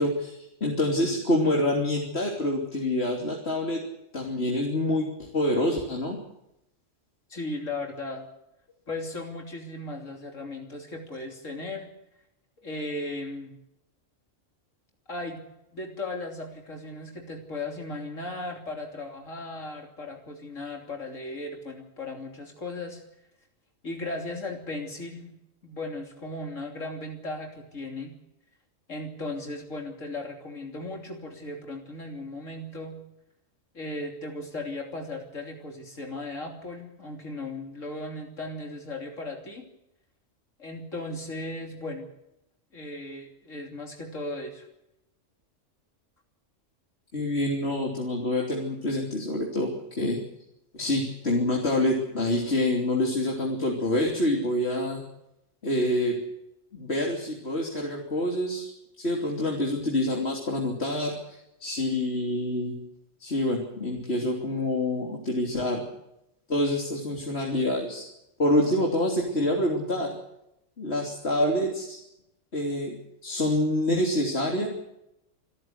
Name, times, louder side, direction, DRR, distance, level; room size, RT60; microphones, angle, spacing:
voice 1, 0.0-3.8 4.1-6.2 47.1-50.2 50.7-55.0 55.6-56.2 56.7-58.7 59.0-62.7 63.2-65.8 66.5-68.0 68.4-70.1 70.8-72.0 72.5-73.0 73.2-74.7, left 1 dB, 55° left, 0 dB, 3.5 m, -26 dB
voice 2, 7.3-8.2 8.9-11.9 12.6-13.5 15.1-15.4 15.7-23.0 23.8-25.3 25.6-28.1 28.9-33.0 33.7-39.6 40.6-42.1 42.7-44.7, left 2 dB, 75° left, 2 dB, 3.5 m, -36 dB
26.5 x 14.0 x 8.2 m, 0.85 s
omnidirectional pair, 1.3 m